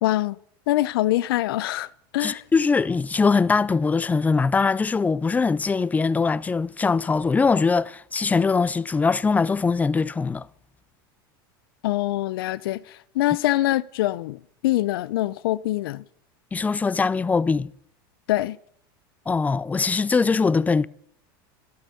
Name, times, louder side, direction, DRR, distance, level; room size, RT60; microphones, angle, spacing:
voice 1, 0.0-0.4 0.7-2.4 11.8-16.0 18.3-18.6, left 16 dB, 80° left, 0.7 m, -24 dB
voice 2, 2.2-10.5 16.5-17.7 19.3-20.9, left 4 dB, 15° left, 0.5 m, -22 dB
12.5 x 12.0 x 6.8 m
supercardioid pair, 120°, 12 cm